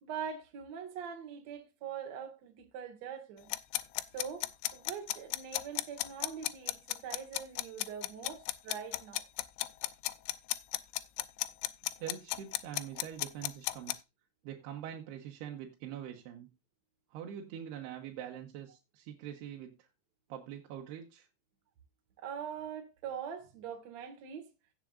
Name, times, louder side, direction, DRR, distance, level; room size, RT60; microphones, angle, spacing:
voice 1, 0.0-3.5 4.1-9.3 22.2-24.5, right 7 dB, 55° right, 2.1 m, -43 dB
sound 1, 3.5-14.0, left 18 dB, 85° left, 2.9 m, -34 dB
voice 2, 11.8-14.0 14.4-16.5 17.1-19.9 20.3-21.3, right 10 dB, 75° right, 2.8 m, -44 dB
16.0 x 7.2 x 2.4 m
omnidirectional pair, 5.2 m